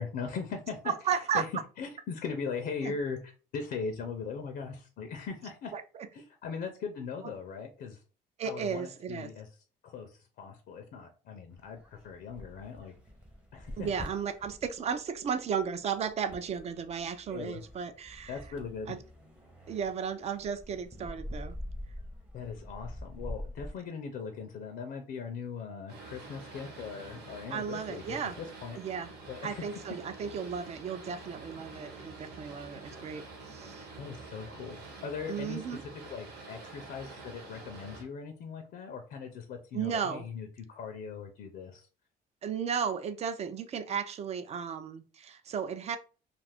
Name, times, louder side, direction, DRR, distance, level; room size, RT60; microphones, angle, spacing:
voice 1, 0.0-0.9 1.3-1.5 1.8-5.7 6.1-8.0 8.4-9.5 9.8-12.9 13.5-13.9 17.3-17.6 18.3-18.9 22.3-28.8 29.3-29.8 34.0-34.8 35.0-35.7 36.0-41.9, left 5 dB, 65° left, 5 dB, 0.5 m, -39 dB
voice 2, 0.9-1.4 2.8-3.0 5.7-6.1 8.4-9.3 13.8-18.4 18.9-19.0 19.7-21.6 27.5-28.3 28.8-29.1 29.4-33.9 35.3-35.8 39.7-40.3 42.4-46.0, right 7 dB, 40° right, 10 dB, 0.4 m, -34 dB
sound 1, 11.5-23.7, left 1 dB, 5° right, 0.7 m, -46 dB
Boat Water vehicle, 25.9-38.0, right 3 dB, 80° right, 1.1 m, -47 dB
2.5 x 2.4 x 3.4 m, 0.36 s
cardioid pair, 110°, 17 cm